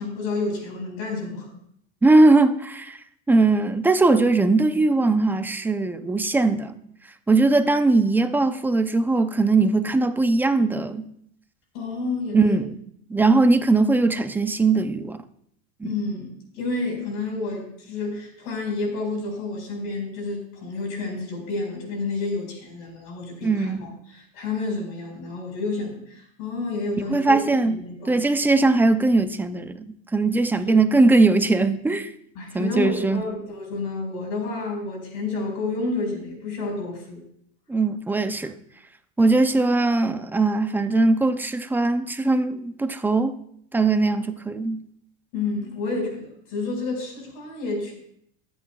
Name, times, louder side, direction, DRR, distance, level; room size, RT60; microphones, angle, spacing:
voice 1, 0.0-1.5 11.7-12.6 15.8-27.4 27.7-28.2 30.6-30.8 32.3-37.2 45.3-47.9, left 3 dB, 55° left, 4.8 m, -30 dB
voice 2, 2.0-6.7 7.3-11.1 12.3-12.8 13.1-15.2 15.8-15.9 23.4-23.9 27.1-27.8 28.1-32.1 32.5-33.3 37.7-38.6 39.2-43.4 43.7-44.8, right 3 dB, 5° right, 0.4 m, -20 dB
22.0 x 8.6 x 2.3 m
supercardioid pair, 130°, 33 cm